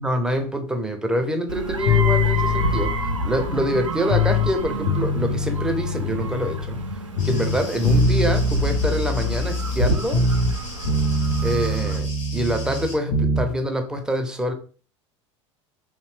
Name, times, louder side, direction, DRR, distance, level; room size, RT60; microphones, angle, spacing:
voice 1, 0.0-6.8 7.2-10.2 11.4-14.5, equal, 5° right, 0.5 m, -25 dB
sound 1, 1.5-12.0, right 3 dB, 85° right, 0.4 m, -29 dB
sound 2, 1.9-4.5 4.9-6.9 7.2-10.6 10.9-13.5, left 3 dB, 60° left, 0.5 m, -23 dB
sound 3, 7.2-13.0, left 3 dB, 75° left, 1.0 m, -39 dB
2.7 x 2.1 x 3.1 m
figure-of-eight pair, 75°, 16 cm